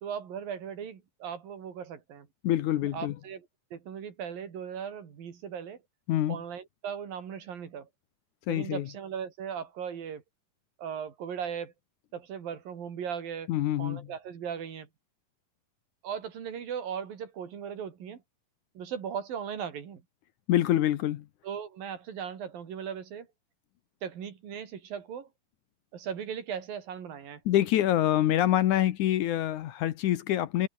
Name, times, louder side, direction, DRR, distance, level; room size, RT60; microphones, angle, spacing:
voice 1, 0.0-2.3 2.9-3.4 3.7-5.8 6.3-7.9 8.5-10.2 10.8-11.7 12.1-13.5 13.8-14.9 16.0-18.2 18.8-20.0 21.4-23.3 24.0-25.3 25.9-27.4, right 7 dB, 80° right, 4.8 m, -38 dB
voice 2, 2.4-3.2 6.1-6.4 8.5-8.9 13.5-14.1 20.5-21.3 27.5-30.7, left 13 dB, 70° left, 2.3 m, -26 dB
open air
omnidirectional pair, 4.0 m